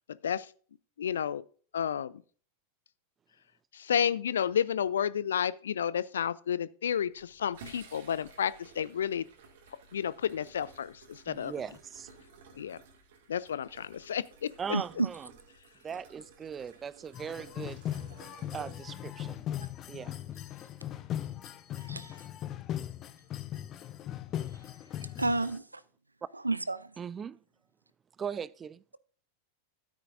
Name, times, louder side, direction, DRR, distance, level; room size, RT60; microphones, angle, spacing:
voice 1, 0.1-0.5 1.0-1.4 1.7-2.2 3.7-9.2 9.9-11.5 12.5-12.8 13.3-14.8, left 8 dB, 65° left, 0.4 m, -31 dB
sound 1, 7.1-19.5, right 4 dB, 55° right, 2.0 m, -55 dB
voice 2, 11.3-12.1 14.6-15.3 15.8-17.8 18.5-19.4 19.9-20.2 27.0-27.4 28.2-28.8, right 7 dB, 20° right, 0.4 m, -39 dB
sound 2, 17.1-25.6, left 11 dB, 30° left, 0.7 m, -39 dB
voice 3, 25.2-25.6 26.4-26.9, right 2 dB, 80° right, 0.5 m, -30 dB
13.0 x 9.1 x 2.5 m
figure-of-eight pair, 90°, 0 cm